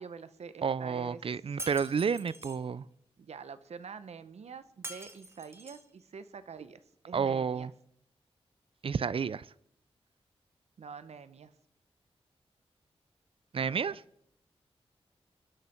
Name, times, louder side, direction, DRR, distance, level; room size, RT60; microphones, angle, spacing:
voice 1, 0.0-1.2 3.2-6.8 7.1-7.7 10.8-11.5 13.6-14.0, right 6 dB, 85° right, 1.0 m, -46 dB
voice 2, 0.6-2.9 7.1-7.7 8.8-9.5 13.5-14.0, right 6 dB, 60° right, 0.5 m, -30 dB
Shatter, 1.6-2.6 4.8-5.9, right 1 dB, 25° right, 1.9 m, -44 dB
24.5 x 11.5 x 4.5 m
wide cardioid pair, 95°, 11 cm